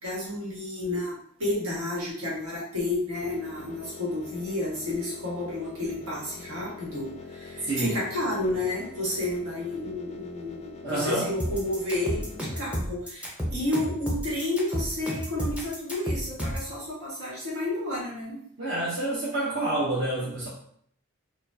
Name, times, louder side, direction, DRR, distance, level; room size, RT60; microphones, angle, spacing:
voice 1, 0.0-1.1 1.4-18.4, left 1 dB, 75° right, -5 dB, 1.5 m, -31 dB
sound 1, 3.2-12.6, left 4 dB, 30° left, 0.3 m, -44 dB
voice 2, 7.7-8.0 10.8-11.3 18.6-20.5, right 1 dB, 50° right, -7 dB, 0.8 m, -28 dB
sound 2, 11.4-16.7, equal, 5° right, 0.6 m, -31 dB
4.3 x 2.2 x 2.7 m, 0.64 s
head